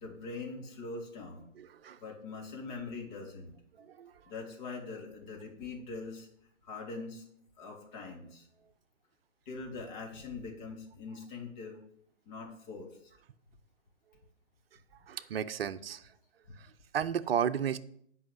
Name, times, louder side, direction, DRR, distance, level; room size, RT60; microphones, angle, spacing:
voice 1, 0.0-1.5 2.0-3.5 4.3-6.3 6.6-7.2 7.6-8.5 9.4-11.8 12.3-12.9, left 4 dB, 35° left, 1 dB, 3.1 m, -42 dB
voice 2, 1.6-2.0 3.8-4.1 15.1-16.1 16.5-17.8, right 8 dB, 50° right, 12 dB, 0.7 m, -34 dB
9.2 x 5.6 x 7.9 m, 0.68 s
figure-of-eight pair, 130°, 37 cm